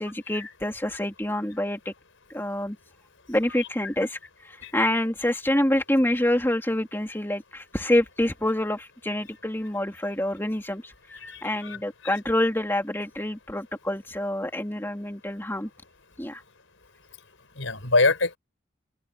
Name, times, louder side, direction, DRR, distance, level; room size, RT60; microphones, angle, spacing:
voice 1, 0.0-1.8 2.3-2.8 3.3-4.2 4.5-10.9 11.4-15.7 16.2-16.4, left 1 dB, 10° left, 2.6 m, -26 dB
voice 2, 11.2-11.8 17.6-18.4, left 3 dB, 80° left, 4.6 m, -24 dB
head